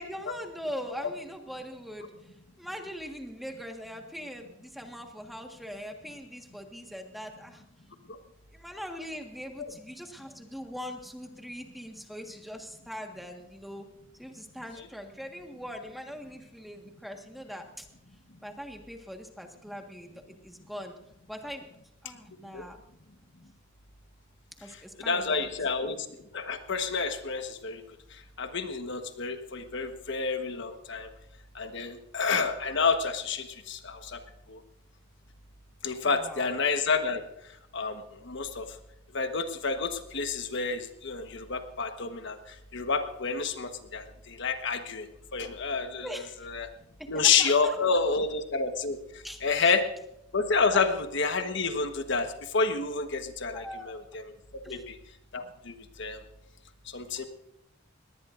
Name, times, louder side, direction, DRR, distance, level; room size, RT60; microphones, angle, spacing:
voice 1, 0.0-2.1 2.6-7.6 8.5-13.9 14.2-17.9 18.4-21.0 21.3-21.7 22.0-22.8 24.6-25.5 36.0-36.5 46.0-46.4 47.1-48.0 49.2-49.7 50.6-50.8 53.5-54.0 54.6-54.9, equal, ahead, 3 dB, 1.6 m, -41 dB
voice 2, 25.1-26.0 26.3-27.8 28.4-31.1 31.5-34.2 34.5-34.6 35.8-37.2 37.7-38.7 39.1-42.4 42.7-45.1 45.3-46.1 46.4-46.7 47.1-49.0 49.4-49.9 50.3-54.2 54.7-55.0 55.3-56.2 56.9-57.3, left 4 dB, 65° left, 7 dB, 1.3 m, -29 dB
20.0 x 18.5 x 2.6 m, 0.82 s
head